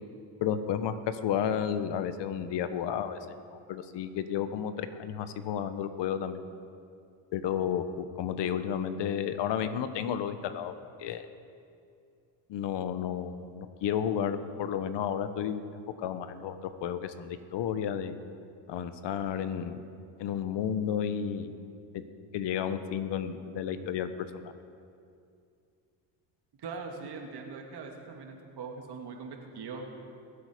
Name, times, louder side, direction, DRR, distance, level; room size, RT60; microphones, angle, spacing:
voice 1, 0.4-3.2 3.5-6.4 7.3-10.7 11.0-11.3 12.5-15.6 16.0-18.2 18.7-19.8 20.2-21.5 21.9-22.0 22.3-24.5, left 8 dB, 70° left, 11 dB, 1.0 m, -32 dB
voice 2, 26.6-29.9, right 4 dB, 60° right, 2 dB, 2.1 m, -41 dB
22.5 x 8.1 x 5.0 m, 2.4 s
cardioid pair, 100°, 44 cm